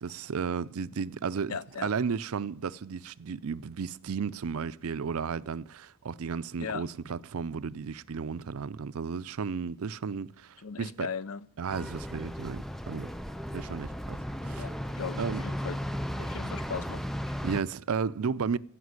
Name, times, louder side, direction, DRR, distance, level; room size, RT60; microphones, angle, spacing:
voice 1, 0.0-11.1 11.6-13.1 13.5-14.2 14.4-14.7 15.2-15.4 16.4-16.5 17.4-18.6, right 6 dB, 90° right, 0.5 m, -33 dB
voice 2, 1.5-1.9 6.6-6.8 10.6-11.5 14.6-15.8 16.2-17.0 17.3-17.4, left 6 dB, 90° left, 0.6 m, -38 dB
sound 1, 11.7-17.6, equal, ahead, 0.4 m, -35 dB
16.0 x 5.8 x 9.5 m
head